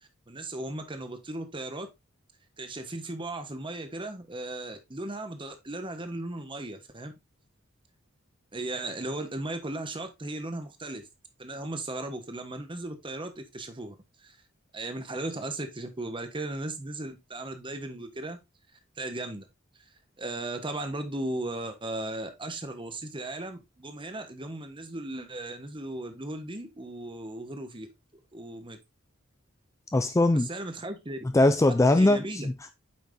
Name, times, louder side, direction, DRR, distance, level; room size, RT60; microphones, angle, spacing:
voice 1, 0.3-1.9 2.6-7.1 8.5-11.1 11.4-14.4 14.7-18.4 19.0-19.5 20.2-27.9 28.3-28.8 30.3-31.2 31.9-32.5, right 2 dB, 25° right, 1.2 m, -36 dB
voice 2, 29.9-30.5 31.3-32.7, left 2 dB, 15° left, 0.4 m, -21 dB
8.8 x 5.7 x 2.7 m
head